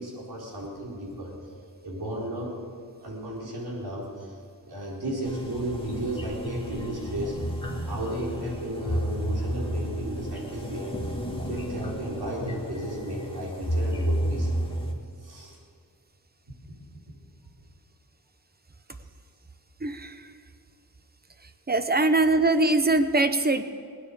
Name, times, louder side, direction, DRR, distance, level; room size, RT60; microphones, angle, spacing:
voice 1, 0.0-1.3 1.8-2.5 3.0-4.4 4.7-7.4 7.8-11.0 11.5-14.5 15.2-15.6 16.6-16.7, right 1 dB, 75° right, -3 dB, 4.4 m, -34 dB
sound 1, 5.2-14.9, equal, 15° left, 2.0 m, -31 dB
voice 2, 19.8-20.1 21.7-23.6, right 2 dB, 25° right, 9 dB, 0.9 m, -22 dB
20.0 x 9.6 x 6.9 m, 2.2 s
wide cardioid pair, 100°, 38 cm